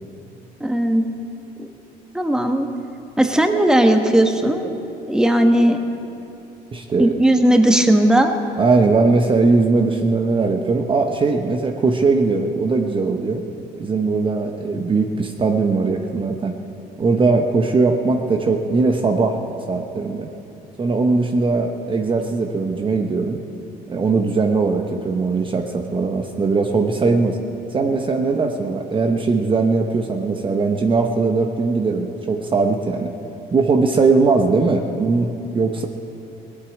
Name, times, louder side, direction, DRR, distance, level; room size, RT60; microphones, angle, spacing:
voice 1, 0.6-1.0 1.6-1.7 2.1-2.7 3.2-4.7 5.1-5.8 7.0-8.3, right 1 dB, 5° right, 5 dB, 1.3 m, -16 dB
voice 2, 6.7-7.1 8.6-13.4 13.8-16.6 17.0-19.4 19.7-20.3 20.8-23.4 23.9-27.4 27.7-33.1 33.5-35.9, right 3 dB, 30° right, 4 dB, 1.0 m, -19 dB
18.0 x 8.4 x 9.1 m, 2.8 s
cardioid pair, 110°, 17 cm